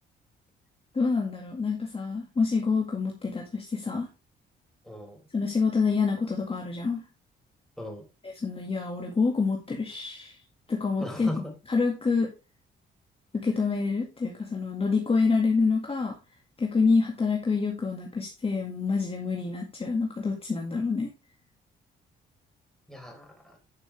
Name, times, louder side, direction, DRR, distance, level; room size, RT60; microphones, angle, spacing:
voice 1, 0.9-4.1 5.3-7.0 8.4-10.4 10.7-11.3 11.7-12.3 13.3-16.2 16.6-21.1, left 4 dB, 30° left, 0 dB, 2.0 m, -27 dB
voice 2, 4.8-5.3 7.8-8.0 11.0-11.5 22.9-23.6, left 1 dB, ahead, 1 dB, 4.3 m, -38 dB
11.0 x 6.1 x 3.4 m, 0.28 s
cardioid pair, 90°, 20 cm